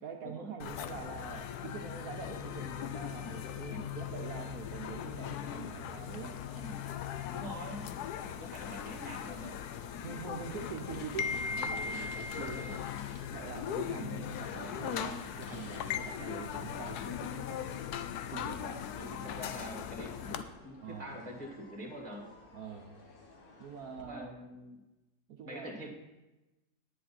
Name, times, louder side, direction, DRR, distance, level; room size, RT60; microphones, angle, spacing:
voice 1, 0.0-6.4 10.0-12.8 13.3-17.8 18.3-18.9 20.8-21.1 22.5-22.9 23.6-24.4 25.3-25.7, right 6 dB, 70° right, 2 dB, 1.3 m, -44 dB
sound 1, 0.6-20.4, left 8 dB, 85° left, 1.2 m, -39 dB
sound 2, 4.9-24.0, left 2 dB, 70° left, 2.0 m, -55 dB
voice 2, 7.3-7.9 8.3-9.6 14.0-14.2 19.0-22.3 24.0-24.8 25.4-25.9, equal, 25° right, 1 dB, 1.9 m, -45 dB
10.5 x 10.0 x 4.2 m, 1.0 s
omnidirectional pair, 1.6 m